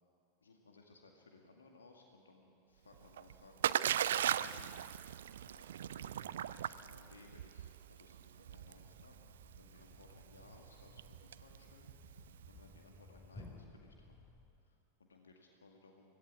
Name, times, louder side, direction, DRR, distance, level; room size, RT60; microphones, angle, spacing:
voice 1, 0.4-4.8 5.4-11.9 12.4-14.2 14.6-16.2, left 3 dB, 70° left, 2 dB, 2.1 m, -62 dB
Splash splatter, 2.9-12.8, right 10 dB, 60° right, 0.5 m, -39 dB
Thump thud, 8.5-14.7, left 2 dB, 20° left, 2.7 m, -58 dB
25.0 x 17.5 x 8.3 m, 2.5 s
figure-of-eight pair, 90°, 0 cm